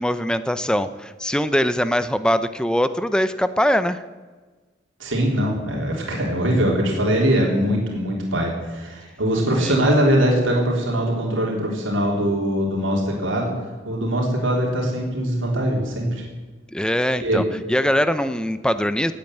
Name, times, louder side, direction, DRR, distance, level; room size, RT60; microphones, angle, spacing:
voice 1, 0.0-4.0 9.6-9.8 16.7-19.1, equal, 5° left, 12 dB, 0.5 m, -22 dB
voice 2, 5.0-13.5 13.9-16.2 17.2-17.4, equal, 80° right, -2 dB, 3.6 m, -22 dB
16.5 x 8.9 x 9.2 m, 1.3 s
head